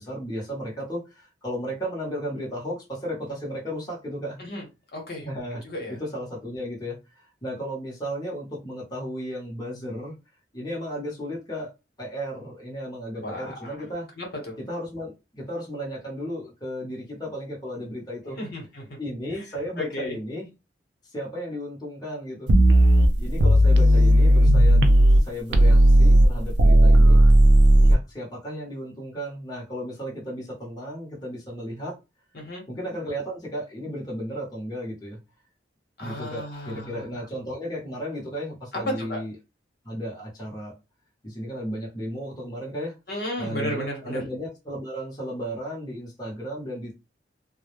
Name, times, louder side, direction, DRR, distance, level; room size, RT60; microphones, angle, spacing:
voice 1, 0.0-4.4 5.2-10.1 10.5-11.7 12.0-14.1 14.6-18.4 19.0-20.5 21.0-22.5 23.2-24.8 25.2-27.2 27.8-31.9 32.7-35.2 36.0-39.3 39.8-40.8 41.2-42.9 43.4-46.9, equal, 20° left, 0.8 m, -34 dB
voice 2, 4.9-5.3 5.6-6.0 13.2-13.7 14.2-14.6 18.2-18.9 19.8-20.2 32.3-32.6 36.0-37.2 39.0-39.2 43.1-44.2, left 1 dB, 55° left, 1.0 m, -34 dB
sound 1, 22.5-25.2 25.5-27.9, right 1 dB, 70° right, 0.4 m, -15 dB
2.2 x 2.0 x 3.0 m
head